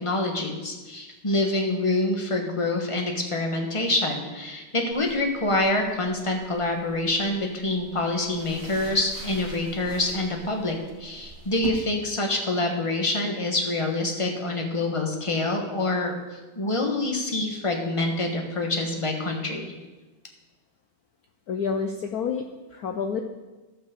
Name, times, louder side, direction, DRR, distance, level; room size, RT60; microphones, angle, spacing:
voice 1, 0.0-16.2 16.5-19.7, left 2 dB, 20° left, 2 dB, 0.9 m, -26 dB
sound 1, 4.9-11.7, right 5 dB, 80° right, 2.6 m, -44 dB
voice 2, 21.5-22.4 22.7-23.2, left 6 dB, 75° left, 4 dB, 0.8 m, -28 dB
12.5 x 5.4 x 6.7 m, 1.2 s
omnidirectional pair, 2.4 m